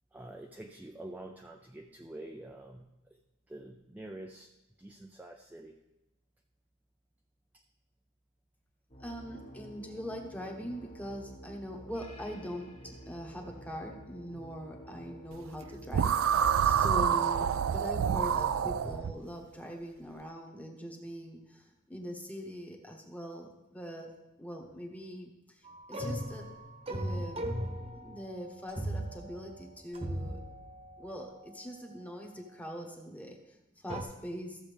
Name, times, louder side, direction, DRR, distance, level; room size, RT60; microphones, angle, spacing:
voice 1, 0.1-3.2 3.5-4.5 4.8-5.8, right 1 dB, 10° right, 3 dB, 0.4 m, -47 dB
sound 1, 8.9-19.1, right 1 dB, 30° left, 1.3 m, -49 dB
voice 2, 9.0-24.1 24.4-26.5 26.9-27.5 27.8-30.4 31.0-34.6, equal, 10° left, 2 dB, 1.1 m, -42 dB
sound 2, 15.9-19.1, right 8 dB, 75° right, 0.3 m, -27 dB
sound 3, 25.7-32.5 33.9-34.0, right 1 dB, 30° right, 1.0 m, -39 dB
14.0 x 7.1 x 3.4 m, 0.98 s
head